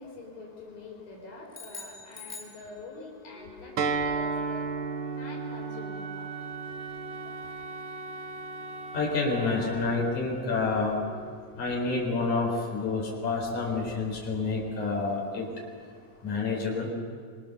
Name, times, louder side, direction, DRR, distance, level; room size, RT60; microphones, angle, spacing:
voice 1, 0.0-4.7 5.1-6.3, left 3 dB, 80° left, -1 dB, 6.1 m, -45 dB
sound 1, 1.5-3.3, left 3 dB, 5° left, 3.0 m, -44 dB
Wind instrument woodwind instrument, 3.3-12.0, right 3 dB, 50° right, 1.6 m, -43 dB
Acoustic guitar, 3.8-9.0, right 4 dB, 65° right, 1.3 m, -34 dB
voice 2, 8.9-11.0 11.6-15.5 16.2-16.9, left 3 dB, 60° left, -2 dB, 5.8 m, -28 dB
26.0 x 24.5 x 6.8 m, 2.1 s
omnidirectional pair, 3.9 m